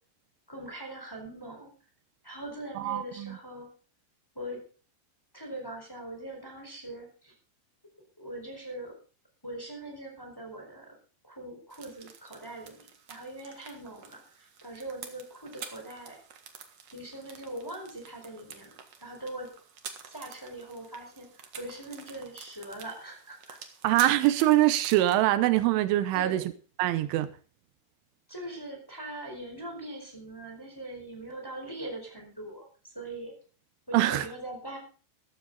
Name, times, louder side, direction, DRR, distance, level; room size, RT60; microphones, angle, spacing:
voice 1, 0.5-1.7 2.2-3.7 4.3-4.6 5.3-7.3 8.2-9.0 9.4-11.0 11.2-16.2 16.9-19.5 20.1-23.6 26.1-26.5 28.3-33.3 33.9-34.8, right 1 dB, 5° left, 3.8 m, -41 dB
voice 2, 2.8-3.4 23.8-26.4 26.8-27.3 33.9-34.3, right 15 dB, 85° right, 3.3 m, -24 dB
sound 1, 11.7-25.2, right 7 dB, 65° right, 1.6 m, -48 dB
14.5 x 13.0 x 3.9 m
omnidirectional pair, 5.6 m